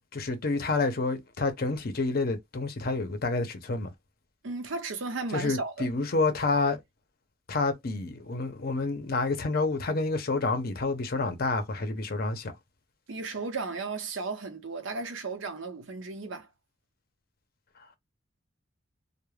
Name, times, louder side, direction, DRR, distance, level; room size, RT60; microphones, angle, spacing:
voice 1, 0.1-3.9 5.3-6.8 7.5-12.5, left 3 dB, 50° left, 0.6 m, -28 dB
voice 2, 4.4-5.9 13.1-16.5, right 3 dB, 80° right, 0.7 m, -35 dB
2.2 x 2.1 x 3.1 m
head